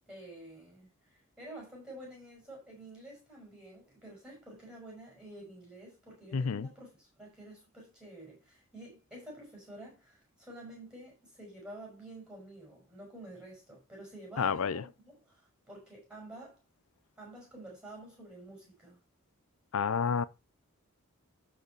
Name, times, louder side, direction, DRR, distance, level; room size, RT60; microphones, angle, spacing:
voice 1, 0.1-16.6 17.2-19.0, right 1 dB, 5° right, 6.1 m, -49 dB
voice 2, 6.3-6.7 14.4-14.8 19.7-20.2, left 6 dB, 70° left, 0.5 m, -29 dB
12.0 x 5.0 x 4.6 m
head